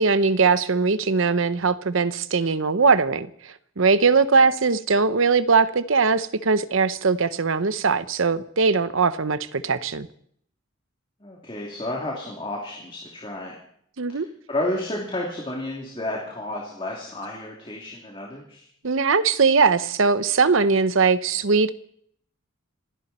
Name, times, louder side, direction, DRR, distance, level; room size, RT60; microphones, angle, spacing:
voice 1, 0.0-10.1 14.0-14.3 18.8-21.7, right 4 dB, 70° right, 0.8 m, -20 dB
voice 2, 11.2-13.6 14.1-18.7, left 1 dB, 25° left, 2.9 m, -31 dB
27.5 x 12.0 x 4.3 m
head